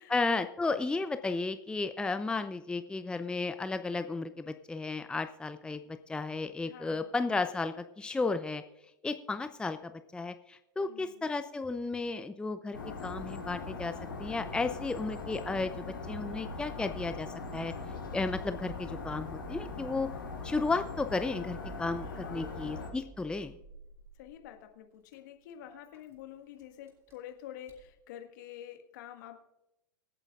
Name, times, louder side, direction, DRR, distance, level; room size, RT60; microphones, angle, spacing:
voice 1, 0.0-5.8 6.1-8.6 9.0-13.9 14.2-17.3 17.5-17.7 18.1-20.1 20.4-23.5, left 3 dB, 10° left, 10 dB, 0.6 m, -33 dB
voice 2, 6.6-7.1 10.8-11.3 22.0-22.6 24.2-29.4, left 11 dB, 60° left, 6 dB, 1.7 m, -48 dB
sound 1, 12.7-22.9, left 3 dB, 85° left, 4.5 m, -41 dB
Engine starting, 14.6-27.9, right 2 dB, 25° right, 3.5 m, -55 dB
25.0 x 8.9 x 2.5 m, 0.89 s
figure-of-eight pair, 90°, 11 cm